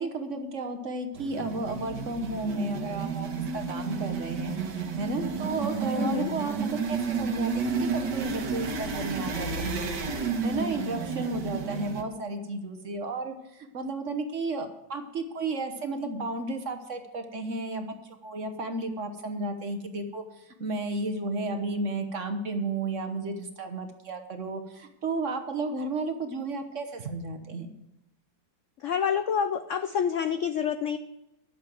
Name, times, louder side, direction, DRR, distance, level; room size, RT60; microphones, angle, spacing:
voice 1, 0.0-3.3 3.5-17.9 18.2-27.7, right 2 dB, 45° right, 6 dB, 1.2 m, -33 dB
sound 1, 1.1-12.0, right 5 dB, 65° right, 1.8 m, -31 dB
voice 2, 6.0-6.3 28.8-31.0, left 7 dB, 80° left, 10 dB, 0.6 m, -27 dB
12.0 x 7.0 x 7.5 m, 0.89 s
omnidirectional pair, 2.0 m